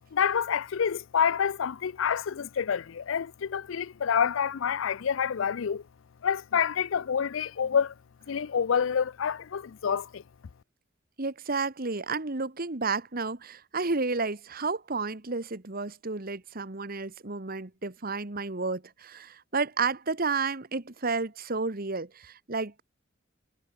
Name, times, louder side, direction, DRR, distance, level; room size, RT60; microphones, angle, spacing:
voice 1, 0.1-5.8 6.2-7.9 8.3-10.2, left 7 dB, 70° left, 0.4 m, -27 dB
voice 2, 11.2-22.8, right 4 dB, 45° right, 1.5 m, -31 dB
head